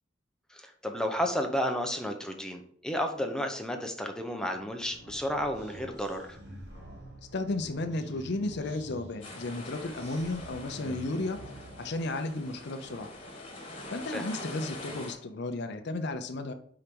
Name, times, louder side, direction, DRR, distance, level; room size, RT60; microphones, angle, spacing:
voice 1, 0.5-6.4 14.1-14.2, equal, 5° left, 4 dB, 0.7 m, -32 dB
sound 1, 4.5-12.5, equal, 60° right, 1.6 m, -48 dB
voice 2, 7.3-11.4 11.8-13.1 13.9-16.5, left 2 dB, 60° left, 7 dB, 0.6 m, -33 dB
sound 2, 9.2-15.1, left 2 dB, 30° left, 1.4 m, -44 dB
4.8 x 4.4 x 5.2 m, 0.63 s
head